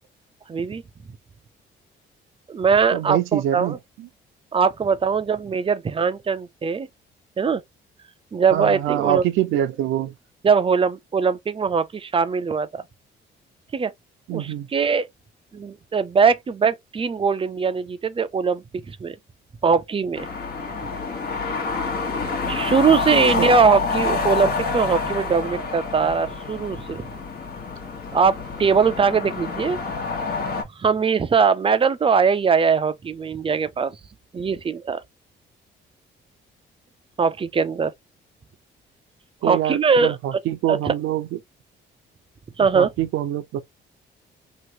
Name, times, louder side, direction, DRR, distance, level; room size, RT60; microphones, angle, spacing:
voice 1, 0.5-0.8 2.5-3.8 4.5-6.9 7.4-7.6 8.3-9.2 10.4-12.7 13.7-13.9 14.3-15.1 15.5-19.2 19.6-20.3 22.5-27.0 28.1-29.8 30.8-33.9 34.3-35.0 37.2-37.9 39.4-40.1 40.7-40.9 42.6-42.9, right 5 dB, 25° right, 0.4 m, -21 dB
voice 2, 2.9-4.1 8.5-10.1 14.3-14.7 23.4-23.5 39.4-41.4 42.8-43.6, right 12 dB, 85° right, 0.6 m, -25 dB
sound 1, 20.1-30.6, left 4 dB, 55° left, 1.2 m, -27 dB
3.0 x 2.5 x 2.8 m
cardioid pair, 90°, 20 cm